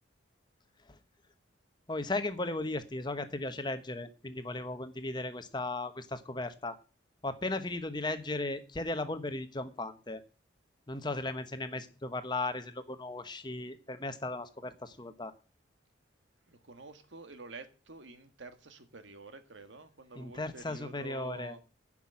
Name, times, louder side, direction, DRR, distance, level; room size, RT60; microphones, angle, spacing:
voice 1, 1.9-6.8 7.2-10.2 10.9-15.3 20.2-21.6, left 2 dB, 25° left, 1.0 m, -36 dB
voice 2, 16.5-21.6, right 3 dB, 75° right, 1.5 m, -48 dB
10.0 x 6.1 x 8.5 m
head